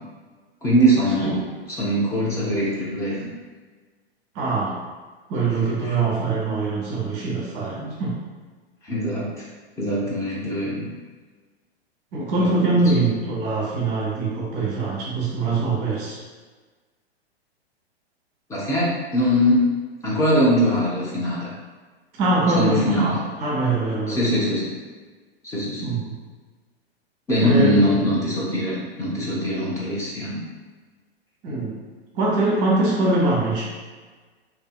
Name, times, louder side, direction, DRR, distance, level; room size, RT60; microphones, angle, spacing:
voice 1, 0.6-1.4 1.8-3.3 5.8-5.9 7.8-7.9 8.8-9.4 9.8-10.9 12.4-12.5 18.5-19.7 20.0-21.5 22.5-23.2 24.1-24.7 25.5-25.9 27.3-30.4, equal, 10° left, -6 dB, 0.4 m, -22 dB
voice 2, 4.3-4.8 5.3-8.2 12.1-16.2 22.2-24.2 25.8-26.1 27.4-28.0 31.4-31.8 32.1-33.6, right 2 dB, 35° right, -4 dB, 0.8 m, -23 dB
2.6 x 2.5 x 2.2 m, 1.4 s
hypercardioid pair, 110°, 32 cm